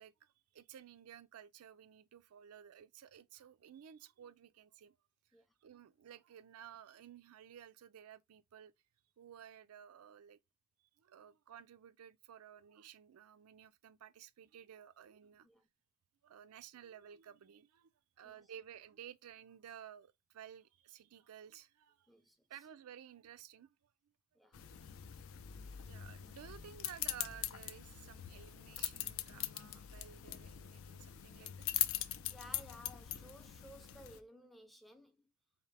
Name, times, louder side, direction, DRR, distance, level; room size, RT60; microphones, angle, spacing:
voice 1, 0.0-5.0 5.6-8.7 9.2-10.4 11.0-15.5 16.2-17.9 18.2-22.1 22.5-23.9 25.9-32.0, right 9 dB, 85° right, 0.4 m, -55 dB
voice 2, 22.1-22.4 24.3-24.6 32.3-35.3, equal, ahead, 0.4 m, -57 dB
sound 1, 24.5-34.2, left 12 dB, 65° left, 0.4 m, -42 dB
4.2 x 2.7 x 3.3 m
head